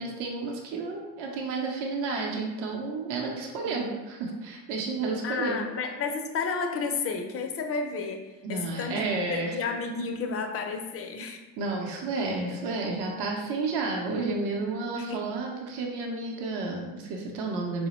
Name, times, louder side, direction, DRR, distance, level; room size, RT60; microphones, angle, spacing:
voice 1, 0.0-5.6 8.4-9.6 11.6-17.9, right 3 dB, 60° right, 0 dB, 0.7 m, -31 dB
voice 2, 5.2-9.0 9.3-11.4 14.9-15.3, left 4 dB, 35° left, 5 dB, 0.4 m, -32 dB
4.0 x 2.0 x 2.9 m, 1.2 s
supercardioid pair, 70°, 45 cm